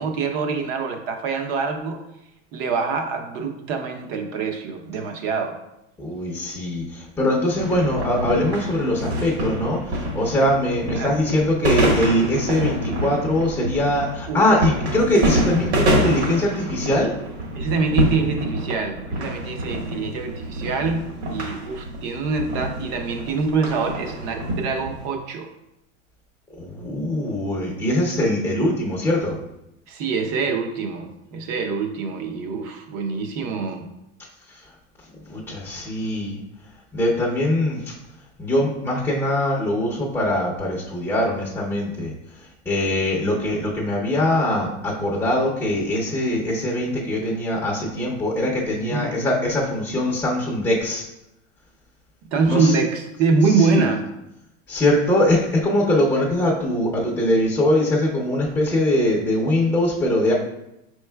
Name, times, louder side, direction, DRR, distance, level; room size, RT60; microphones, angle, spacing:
voice 1, 0.0-2.0 2.5-5.6 10.9-11.2 14.3-14.4 17.5-25.5 29.9-33.9 48.9-49.2 52.3-54.1, right 4 dB, 40° right, 5 dB, 0.6 m, -24 dB
voice 2, 6.0-17.1 26.6-29.4 34.5-34.6 35.3-36.4 36.9-37.9 38.4-42.1 42.7-51.0 52.5-52.7 53.6-53.9 54.7-60.3, left 1 dB, 5° left, -4 dB, 0.6 m, -22 dB
sound 1, 7.6-25.1, equal, 65° right, 1.5 m, -26 dB
5.3 x 4.5 x 2.2 m, 0.85 s
supercardioid pair, 140°, 37 cm